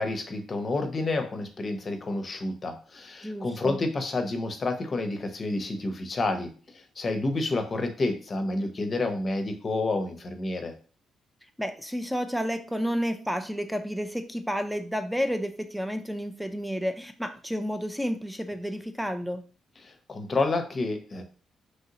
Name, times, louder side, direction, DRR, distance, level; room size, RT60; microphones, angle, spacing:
voice 1, 0.0-10.7 19.8-21.2, left 2 dB, 40° left, 7 dB, 0.6 m, -29 dB
voice 2, 3.2-3.8 11.6-19.4, equal, ahead, 7 dB, 0.4 m, -31 dB
3.1 x 2.7 x 2.8 m, 0.39 s
cardioid pair, 85°, 0 cm